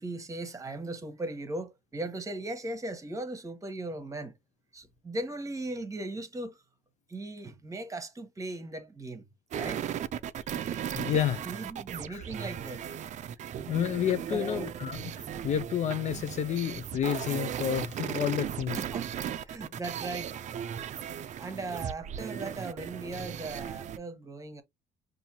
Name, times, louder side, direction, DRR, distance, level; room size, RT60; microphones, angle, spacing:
voice 1, 0.0-4.3 4.7-6.6 7.1-9.3 9.6-9.9 11.5-12.9 14.3-14.7 18.7-19.1 19.5-20.4 21.4-24.6, right 2 dB, 20° right, 1.1 m, -38 dB
sound 1, 9.5-24.0, right 9 dB, 45° right, 0.4 m, -36 dB
voice 2, 11.0-11.4 12.1-12.2 13.7-18.8, left 10 dB, 45° left, 0.4 m, -30 dB
5.5 x 2.6 x 2.8 m
cardioid pair, 110°, 17 cm